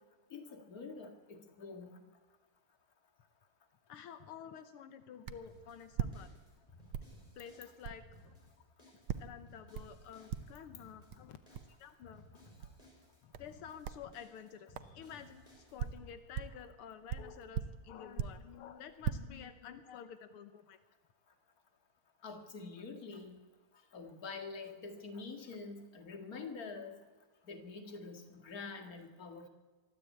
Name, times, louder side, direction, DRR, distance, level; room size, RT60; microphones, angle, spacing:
voice 1, 0.3-2.0 12.6-12.7 22.2-23.4 23.9-27.0 27.4-29.5, left 4 dB, 45° left, 6 dB, 2.4 m, -46 dB
voice 2, 3.9-6.3 7.4-8.4 9.2-12.4 13.2-15.4 15.7-20.8, left 8 dB, 85° left, 10 dB, 1.9 m, -50 dB
sound 1, 5.3-5.5 5.9-6.6 6.9-7.2 7.8-8.0 9.1-9.4 9.7-10.0 10.3-10.7 11.1-11.2 11.5-11.7 12.6-12.8 13.3-13.6 13.8-14.1 14.8-14.9 15.5-16.7 17.1-18.5 18.9-19.1, right 9 dB, 75° right, 1.7 m, -39 dB
sound 2, 5.5-16.2, left 1 dB, 15° left, 5.7 m, -61 dB
23.0 x 14.0 x 8.5 m, 1.3 s
omnidirectional pair, 2.4 m